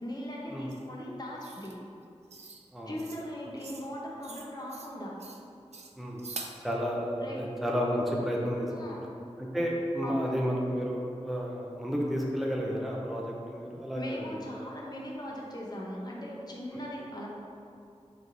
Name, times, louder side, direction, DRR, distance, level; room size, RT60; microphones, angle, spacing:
voice 1, 0.0-1.7 2.9-5.1 7.2-7.4 8.7-9.0 10.0-10.4 13.9-17.3, equal, 35° left, -4 dB, 0.9 m, -39 dB
sound 1, 0.7-0.8 1.4-1.8 2.3-2.6 3.0-3.2 3.6-3.9 4.2-4.9 5.2-5.4 5.7-6.6, right 4 dB, 70° right, 0.4 m, -44 dB
voice 2, 6.6-9.1 9.4-14.4, equal, ahead, -3 dB, 0.6 m, -31 dB
4.1 x 3.4 x 3.9 m, 2.4 s
wide cardioid pair, 55°, 12 cm